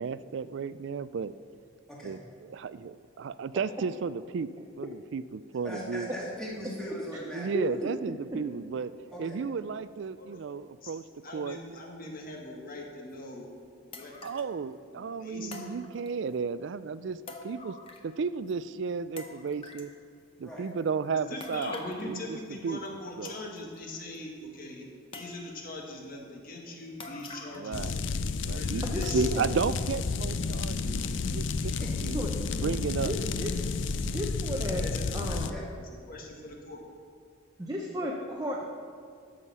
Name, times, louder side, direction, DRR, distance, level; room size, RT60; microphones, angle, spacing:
voice 1, 0.0-1.3 2.0-4.5 4.8-6.1 7.3-8.9 9.2-11.0 11.3-11.6 14.2-17.2 17.4-17.7 18.0-19.9 20.4-21.8 22.1-22.4 22.6-22.8 23.2-23.3 27.6-28.0 28.4-31.0 31.3-31.7 32.0-32.2 32.5-33.1 34.1-34.2, right 5 dB, 60° right, 15 dB, 0.3 m, -33 dB
voice 2, 5.6-7.8 9.1-9.4 20.4-20.7 31.6-32.1 35.5-35.6, equal, 5° left, -6 dB, 2.1 m, -40 dB
voice 3, 7.5-7.9 28.8-29.4 32.1-32.3 32.6-32.7 33.0-33.5 34.0-35.6 37.6-38.6, equal, 15° right, -1 dB, 0.7 m, -34 dB
voice 4, 11.2-13.5 13.9-14.1 15.0-15.7 21.1-24.9 25.1-27.9 28.5-29.2 34.6-35.4 35.8-36.8, left 1 dB, 45° left, 0 dB, 1.6 m, -41 dB
sound 1, 13.1-13.2 13.9-14.5 15.5-16.4 17.3-18.2 18.5-18.6 19.2-19.9 21.4-22.1 22.9-23.0 23.2-23.8 24.1-24.2 25.1-25.7 27.0-27.8 28.1-28.2 29.0-29.5 30.0-30.1 30.7-30.8, left 3 dB, 25° left, 0.8 m, -46 dB
sound 2, 27.7-35.5, left 4 dB, 60° left, 0.5 m, -31 dB
13.0 x 6.4 x 5.5 m, 2.2 s
head